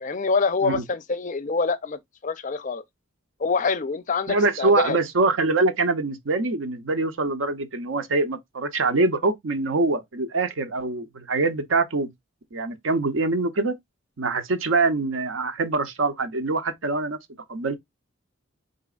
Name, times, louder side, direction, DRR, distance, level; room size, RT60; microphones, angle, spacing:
voice 1, 0.0-2.8 3.4-5.0, left 4 dB, 40° left, 0.4 m, -25 dB
voice 2, 4.3-12.1 12.5-13.7 14.2-17.2 17.5-17.8, right 3 dB, 70° right, 0.7 m, -24 dB
4.1 x 3.8 x 2.3 m
head